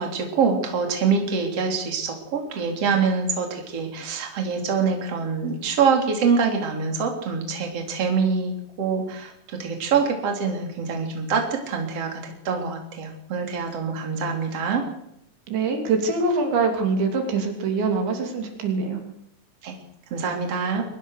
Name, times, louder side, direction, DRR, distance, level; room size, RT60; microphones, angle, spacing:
voice 1, 0.0-8.5 8.8-14.8 19.6-19.8 20.1-20.8, right 5 dB, 35° right, 2 dB, 4.1 m, -25 dB
voice 2, 15.5-19.0, right 4 dB, 80° right, 3 dB, 5.3 m, -24 dB
23.0 x 19.0 x 6.7 m, 0.76 s
omnidirectional pair, 5.2 m